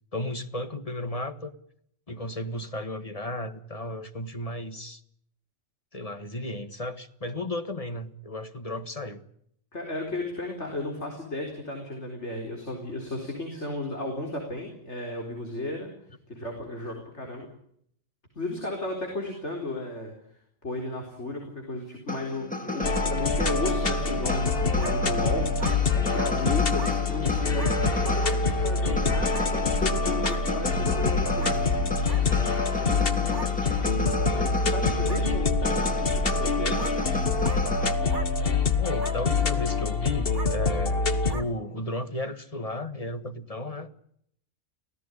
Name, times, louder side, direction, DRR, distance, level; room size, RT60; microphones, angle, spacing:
voice 1, 0.1-1.5 2.1-5.0 5.9-9.2 32.8-33.1 38.8-41.0 41.3-43.9, left 1 dB, 30° left, 10 dB, 1.7 m, -34 dB
voice 2, 9.7-15.9 16.3-17.5 18.3-20.1 20.6-31.7 32.3-33.4 34.3-37.0, left 1 dB, 75° left, 2 dB, 4.7 m, -34 dB
sound 1, 22.1-37.9, left 2 dB, 5° left, 2.8 m, -33 dB
sound 2, 22.8-41.3, left 4 dB, 55° left, 1.7 m, -25 dB
sound 3, 24.8-25.0 25.6-25.8 26.7-27.0 27.5-27.7 28.2-28.4 29.3-29.5 30.2-30.4 31.4-31.6 32.1-32.2 33.2-33.5 34.3-34.4 35.1-35.2 35.8-35.9 36.8-37.0 37.4-37.6 38.1-38.3 39.0-39.2 39.7-39.8 40.3-40.5 41.3-41.5, right 3 dB, 80° right, 2.2 m, -39 dB
24.5 x 17.5 x 10.0 m, 0.70 s
omnidirectional pair, 1.2 m